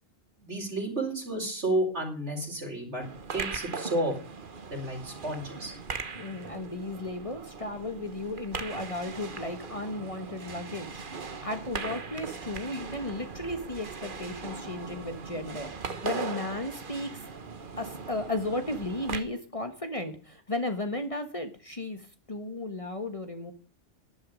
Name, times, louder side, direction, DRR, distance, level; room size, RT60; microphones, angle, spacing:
voice 1, 0.4-3.0 3.3-4.1 4.7-5.7, right 1 dB, 65° right, 1 dB, 5.9 m, -31 dB
sound 1, 3.0-19.2, right 4 dB, 45° right, 1.3 m, -39 dB
voice 2, 6.1-11.0 11.4-15.7 16.0-17.1 17.8-22.0 22.3-23.5, left 2 dB, 30° left, 7 dB, 1.4 m, -34 dB
13.5 x 11.5 x 5.1 m, 0.41 s
omnidirectional pair, 1.2 m